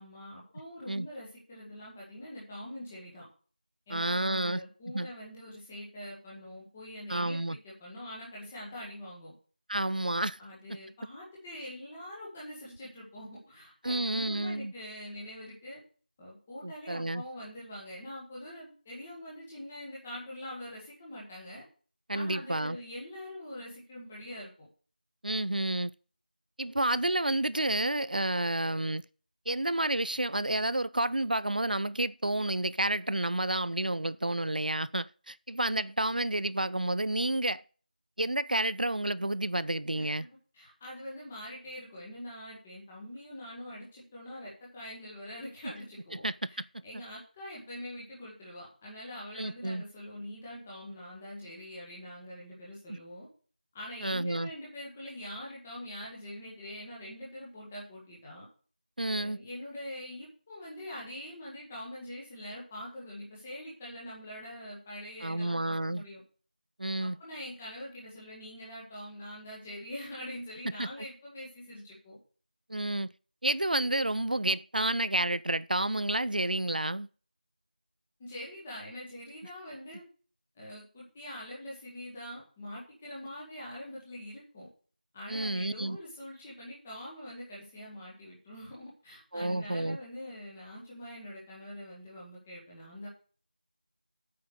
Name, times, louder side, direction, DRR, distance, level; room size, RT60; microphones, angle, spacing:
voice 1, 0.0-3.2 3.9-9.3 9.9-10.1 10.4-15.8 16.2-21.6 22.1-24.5 39.9-40.2 40.5-53.3 53.7-58.5 59.1-66.2 67.0-72.2 78.2-80.0 80.6-84.7 85.1-93.1, left 1 dB, 5° left, 1.7 m, -44 dB
voice 2, 3.9-4.6 4.9-5.1 7.1-7.6 9.7-10.4 10.7-10.8 13.8-14.7 16.6-17.2 22.1-22.8 25.2-25.9 26.6-29.0 29.5-37.6 38.2-40.3 46.1-46.5 46.7-47.0 49.3-49.8 52.9-53.0 54.0-54.5 59.0-59.4 65.2-66.0 66.8-67.2 70.8-70.9 72.7-73.1 73.4-77.1 85.3-86.0 89.3-90.0, right 1 dB, 65° right, 0.6 m, -30 dB
8.6 x 5.8 x 8.1 m
figure-of-eight pair, 175°, 5 cm